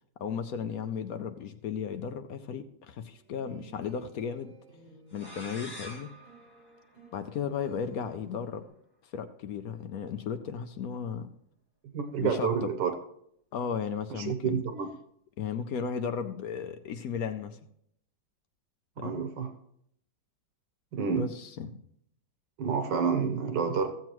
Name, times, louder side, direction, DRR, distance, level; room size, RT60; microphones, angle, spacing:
voice 1, 0.2-4.5 5.1-6.1 7.1-8.6 9.0-11.3 12.2-12.7 13.5-14.6 15.4-17.6 19.0-19.2 21.2-21.8, left 7 dB, 65° left, 9 dB, 1.0 m, -35 dB
sound 1, 3.0-8.7, right 3 dB, 55° right, 5.5 m, -56 dB
sound 2, 5.1-7.7, equal, 15° left, 1.8 m, -47 dB
voice 2, 11.9-12.9 14.1-14.9 19.0-19.5 20.9-21.3 22.6-23.9, right 6 dB, 90° right, 6 dB, 1.7 m, -29 dB
15.0 x 7.6 x 3.0 m, 0.70 s
omnidirectional pair, 1.9 m